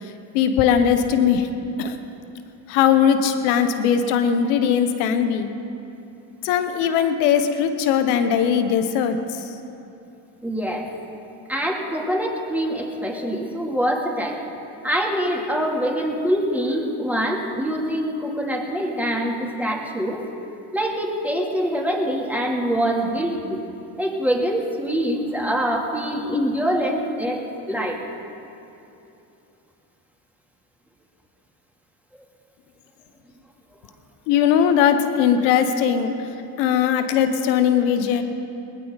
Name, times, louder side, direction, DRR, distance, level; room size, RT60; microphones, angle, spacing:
voice 1, 0.3-1.5 1.8-2.0 2.7-5.5 6.4-9.5 34.3-36.1 36.6-38.2, left 8 dB, 90° left, 8 dB, 1.2 m, -19 dB
voice 2, 10.4-10.9 11.5-14.4 14.8-20.3 20.7-23.6 24.0-28.0, equal, 5° right, -2 dB, 3.0 m, -24 dB
19.5 x 16.5 x 4.1 m, 2.8 s
supercardioid pair, 75°, 49 cm